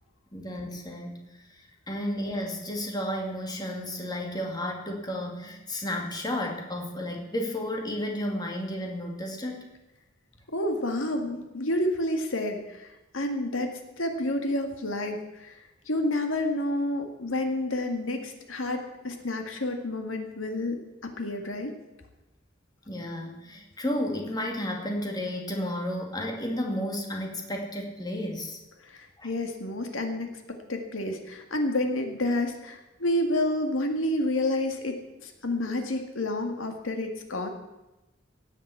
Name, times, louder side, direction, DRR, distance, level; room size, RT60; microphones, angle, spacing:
voice 1, 0.3-1.6 1.9-9.7 22.9-28.6 29.2-29.3, left 1 dB, 20° left, 1 dB, 2.2 m, -32 dB
voice 2, 10.5-21.7 28.8-37.5, left 1 dB, 80° left, 4 dB, 2.0 m, -29 dB
17.0 x 7.3 x 8.5 m, 1.0 s
head